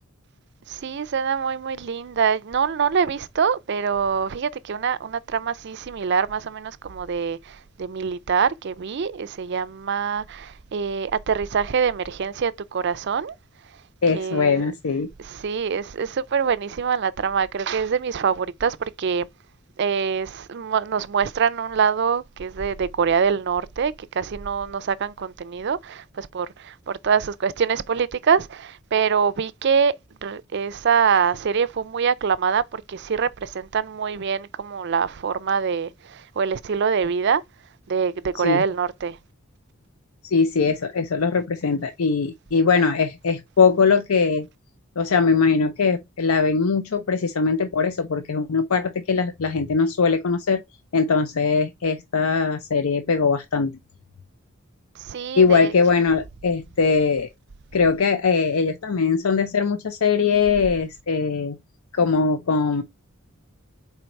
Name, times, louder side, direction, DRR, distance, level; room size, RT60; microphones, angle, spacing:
voice 1, 0.7-13.3 14.1-14.7 15.2-19.3 19.8-29.9 30.2-37.4 37.9-39.2 55.0-55.7, right 6 dB, 55° right, 0.4 m, -24 dB
voice 2, 14.0-15.1 38.4-38.6 40.2-44.5 45.0-50.6 50.9-53.8 55.4-57.3 57.7-61.6 61.9-62.8, left 5 dB, 80° left, 0.6 m, -21 dB
4.5 x 4.0 x 5.2 m
head